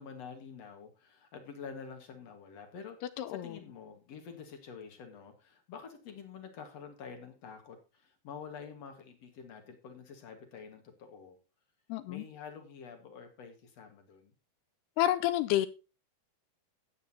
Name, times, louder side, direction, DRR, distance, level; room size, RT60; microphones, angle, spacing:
voice 1, 0.0-11.4 12.1-14.3, left 6 dB, 60° left, 6 dB, 1.8 m, -48 dB
voice 2, 3.2-3.5 11.9-12.2 15.0-15.7, left 13 dB, 80° left, 14 dB, 2.4 m, -29 dB
13.0 x 9.2 x 2.8 m, 0.31 s
omnidirectional pair, 5.2 m